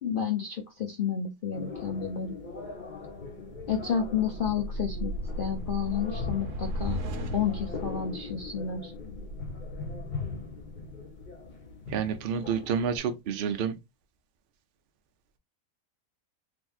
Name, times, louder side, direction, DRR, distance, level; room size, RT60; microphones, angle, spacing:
voice 1, 0.0-2.4 3.7-7.0 7.3-8.9, left 7 dB, 65° left, 0.5 m, -30 dB
sound 1, 1.5-13.0, left 4 dB, 35° left, 1.0 m, -40 dB
sound 2, 3.1-11.5, right 1 dB, 80° right, 1.2 m, -38 dB
voice 2, 11.9-13.7, right 7 dB, 55° right, 0.6 m, -29 dB
3.5 x 2.9 x 2.3 m
omnidirectional pair, 1.6 m